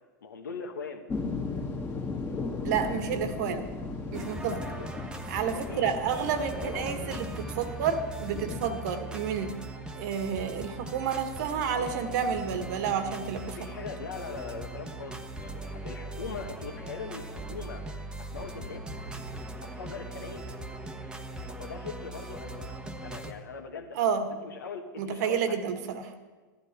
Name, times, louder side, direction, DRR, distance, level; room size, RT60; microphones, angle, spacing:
voice 1, 0.2-1.1 4.5-4.9 5.4-5.9 6.6-6.9 13.4-17.8 18.2-18.8 19.7-20.4 21.5-25.7, left 5 dB, 75° left, 5 dB, 1.6 m, -41 dB
sound 1, 1.1-8.6, left 4 dB, 20° left, 1.7 m, -36 dB
voice 2, 2.6-3.7 4.1-4.6 5.3-9.5 9.9-13.6 24.0-24.3 25.0-26.1, right 7 dB, 60° right, 8 dB, 1.5 m, -30 dB
sound 2, 4.1-23.3, right 1 dB, 10° right, 1.1 m, -40 dB
16.5 x 12.0 x 4.4 m, 1.3 s
hypercardioid pair, 95°, 10 cm